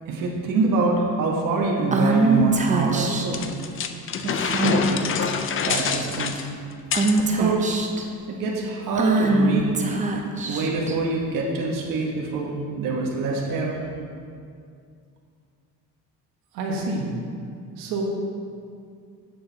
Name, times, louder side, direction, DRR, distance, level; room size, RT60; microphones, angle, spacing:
voice 1, 0.1-3.4 4.2-5.0 5.6-6.4 7.2-7.7 8.3-9.8 10.5-13.7, right 3 dB, 65° right, -2 dB, 1.2 m, -25 dB
Female speech woman speaking / Whispering, 1.9-3.4 4.4-4.8 5.2-5.4 5.7-6.2 6.9-8.0 8.9-10.9, right 2 dB, 20° right, 0.7 m, -23 dB
sound 1, 3.3-7.2, left 6 dB, 35° left, 0.5 m, -26 dB
voice 2, 16.5-17.1 17.8-18.0, right 3 dB, 90° right, -1 dB, 1.4 m, -28 dB
8.2 x 6.6 x 4.0 m, 2.3 s
cardioid pair, 115°, 35 cm